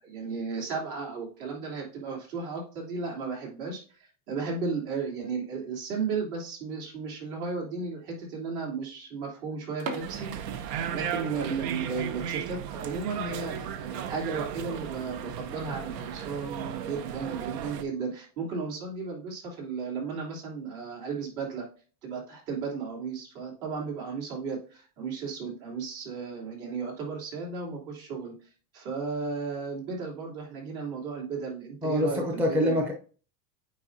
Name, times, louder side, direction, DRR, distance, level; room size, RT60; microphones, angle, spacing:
voice 1, 0.0-10.3 10.9-21.6 22.0-28.3 28.7-32.8, right 5 dB, 65° right, -2 dB, 3.3 m, -34 dB
sound 1, 9.7-11.6 12.0-12.1 12.6-12.8 13.2-13.3 13.5-13.6 14.4-14.7, right 3 dB, 50° right, 1.0 m, -41 dB
sound 2, 10.0-17.8, right 8 dB, 90° right, 0.9 m, -35 dB
voice 2, 31.8-32.9, left 1 dB, 5° right, 2 dB, 0.4 m, -25 dB
8.6 x 4.8 x 2.7 m, 0.40 s
supercardioid pair, 150°, 47 cm